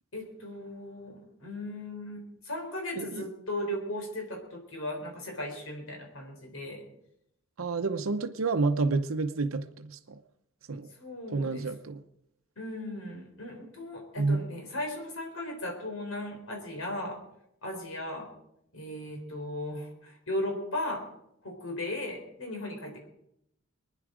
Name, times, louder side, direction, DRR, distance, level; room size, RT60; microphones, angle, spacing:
voice 1, 0.1-6.8 11.0-11.7 12.6-17.2 17.6-18.3 18.7-21.0 21.4-23.1, left 1 dB, 85° left, 3.8 m, -37 dB
voice 2, 7.6-10.2 10.7-10.9 11.3-12.0 14.2-14.4, right 3 dB, 85° right, 0.7 m, -29 dB
22.5 x 10.0 x 5.0 m
head